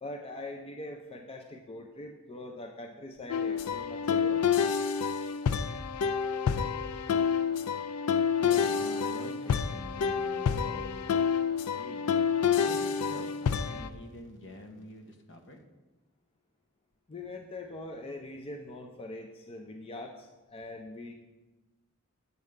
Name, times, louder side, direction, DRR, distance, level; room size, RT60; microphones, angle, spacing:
voice 1, 0.0-4.4 17.1-21.1, left 2 dB, 25° left, 2 dB, 0.5 m, -42 dB
sound 1, 3.3-13.9, left 7 dB, 90° left, 0.4 m, -28 dB
voice 2, 8.4-11.1 11.8-12.1 12.5-15.6, left 1 dB, 55° left, 4 dB, 0.9 m, -46 dB
8.1 x 3.6 x 6.5 m, 1.1 s
head